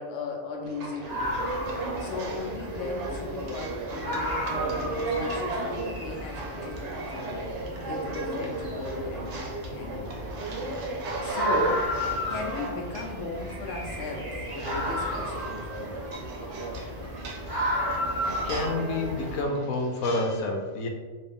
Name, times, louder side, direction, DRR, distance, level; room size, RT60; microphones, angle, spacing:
voice 1, 0.0-1.3 2.0-7.5 7.8-9.4 9.6-10.2 11.2-11.9 12.3-16.0, left 2 dB, 65° left, 0 dB, 0.9 m, -36 dB
sound 1, 0.6-20.3, right 2 dB, 65° right, 0.9 m, -36 dB
sound 2, 1.0-19.4, equal, 30° right, 0.4 m, -34 dB
voice 2, 18.4-20.9, left 2 dB, 90° left, 1 dB, 1.1 m, -28 dB
3.2 x 2.6 x 3.5 m, 1.4 s
omnidirectional pair, 1.5 m